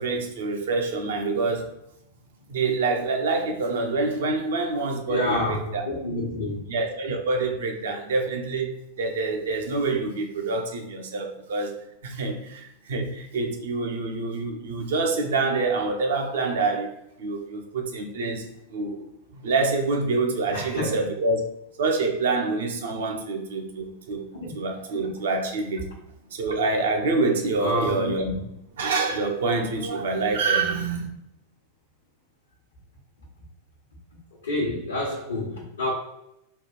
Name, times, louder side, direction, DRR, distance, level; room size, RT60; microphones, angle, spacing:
voice 1, 0.0-1.7 2.5-5.9 6.7-19.0 19.4-21.4 21.8-24.3 24.5-25.9 26.3-28.4 28.7-31.1, right 3 dB, 60° right, 0.7 m, -26 dB
voice 2, 5.1-6.6 20.5-21.0 24.3-24.5 27.6-27.9 28.2-28.4 34.4-35.9, left 1 dB, 70° left, 1.0 m, -28 dB
3.3 x 2.4 x 4.3 m
figure-of-eight pair, 90°, 0 cm